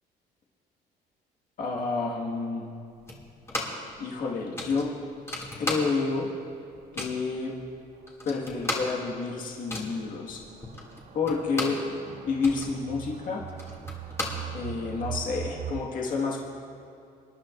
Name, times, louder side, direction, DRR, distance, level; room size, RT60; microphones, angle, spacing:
voice 1, 1.6-2.7 4.0-4.9 5.6-6.3 6.9-7.5 8.3-10.4 11.1-13.4 14.5-16.4, left 4 dB, 55° left, -2 dB, 1.8 m, -29 dB
sound 1, 3.1-3.9 4.2-4.3 4.6-6.2 6.5-7.3 7.8-7.9 8.1-11.9 12.2-15.0, left 1 dB, 15° left, 2.4 m, -35 dB
sound 2, 7.6-7.7 8.1-8.2 8.7-8.8 9.7-15.8, right 11 dB, 40° right, 0.4 m, -41 dB
26.0 x 10.5 x 2.6 m, 2.6 s
cardioid pair, 110°, 17 cm